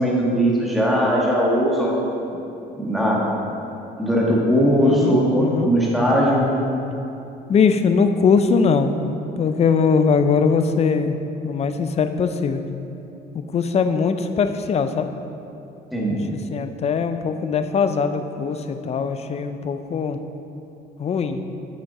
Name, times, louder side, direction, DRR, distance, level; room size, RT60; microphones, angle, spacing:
voice 1, 0.0-2.0 2.8-3.2 4.0-6.5 15.9-16.2, equal, ahead, -5 dB, 1.9 m, -19 dB
voice 2, 4.8-5.7 7.5-11.2 11.4-12.6 13.3-15.1 16.1-20.2 21.0-21.4, left 5 dB, 40° left, 9 dB, 0.5 m, -21 dB
8.8 x 6.2 x 4.2 m, 2.8 s
cardioid pair, 110°, 17 cm